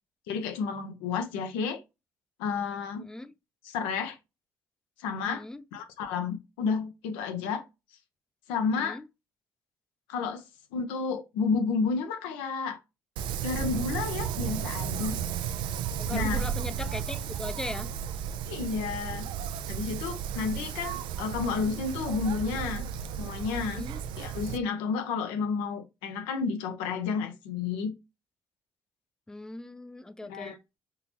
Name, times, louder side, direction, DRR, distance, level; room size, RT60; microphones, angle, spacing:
voice 1, 0.3-1.8 2.4-3.1 3.6-4.2 5.0-5.4 5.7-7.6 8.5-9.0 10.1-10.4 10.7-12.8 13.4-15.2 16.1-16.4 18.5-19.3 19.7-22.9 23.2-23.9 24.2-27.9 30.2-30.6, left 5 dB, 90° left, 0.6 m, -31 dB
voice 2, 3.0-3.3 5.2-5.6 8.7-9.0 16.0-17.9 23.7-24.0 29.3-30.6, left 2 dB, 10° left, 0.5 m, -39 dB
Wind, 13.2-24.6, right 8 dB, 75° right, 0.4 m, -34 dB
3.7 x 2.8 x 2.8 m
supercardioid pair, 65°, 8 cm